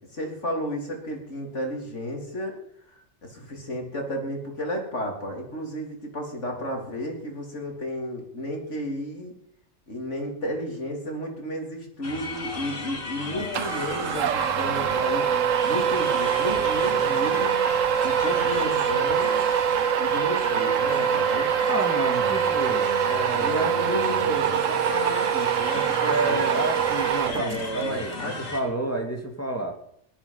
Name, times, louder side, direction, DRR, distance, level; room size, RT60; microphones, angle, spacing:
voice 1, 0.1-2.6 2.9-9.3 9.9-15.3 15.6-17.6 18.0-19.4 20.0-21.5 23.3-26.4 27.2-28.4, equal, 65° left, 1 dB, 3.9 m, -32 dB
sound 1, 12.0-28.6, left 3 dB, 85° left, 3.7 m, -35 dB
sound 2, 13.5-27.8, right 9 dB, 90° right, 1.2 m, -24 dB
voice 2, 21.6-23.7 26.0-29.7, right 2 dB, 10° left, 1 dB, 2.6 m, -30 dB
17.5 x 12.0 x 5.7 m, 0.69 s
omnidirectional pair, 1.3 m